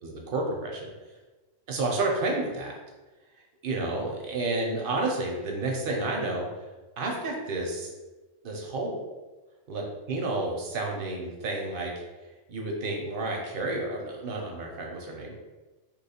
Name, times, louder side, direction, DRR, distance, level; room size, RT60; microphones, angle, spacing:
voice 1, 0.0-0.9 1.7-2.8 3.6-6.5 7.0-7.9 8.4-9.0 9.7-11.9 12.5-15.4, right 2 dB, 60° right, 0 dB, 0.6 m, -30 dB
2.9 x 2.3 x 4.1 m, 1.2 s
omnidirectional pair, 1.3 m